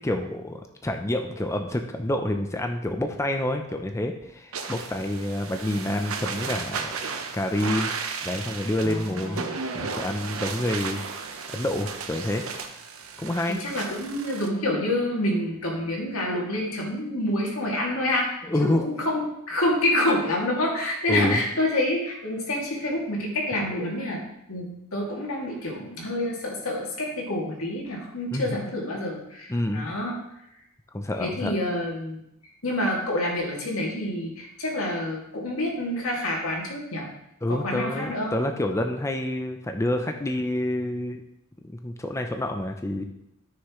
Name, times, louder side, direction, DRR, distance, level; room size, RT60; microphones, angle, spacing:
voice 1, 0.0-7.0 7.3-7.9 8.2-9.4 9.7-11.0 11.5-12.4 13.2-13.9 18.4-18.8 21.1-21.4 28.3-28.5 29.5-29.9 30.9-31.5 37.4-41.2 41.6-43.1, left 1 dB, 15° left, 4 dB, 0.5 m, -28 dB
sound 1, 4.5-14.5, right 5 dB, 75° right, 0.9 m, -34 dB
voice 2, 8.8-9.5 13.5-18.4 18.7-24.2 24.5-30.1 31.2-32.2 32.6-37.1 37.5-38.3, left 1 dB, 85° left, -2 dB, 2.4 m, -27 dB
13.0 x 6.5 x 3.1 m, 0.81 s
head